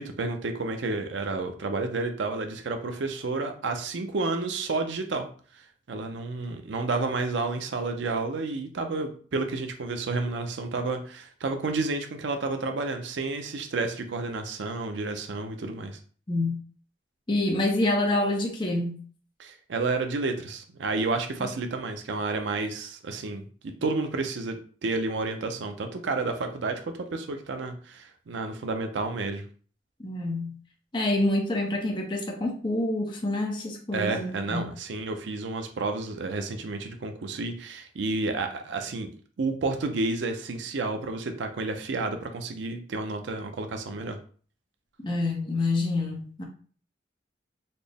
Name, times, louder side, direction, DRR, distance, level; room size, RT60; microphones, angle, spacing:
voice 1, 0.0-5.3 5.5-16.0 19.4-29.4 33.9-39.1 39.4-44.2, right 3 dB, 70° right, 0.5 m, -31 dB
voice 2, 17.3-19.0 21.4-21.5 30.0-30.5 30.9-34.6 45.0-46.4, left 2 dB, 25° left, 0.6 m, -27 dB
4.0 x 2.0 x 3.4 m
head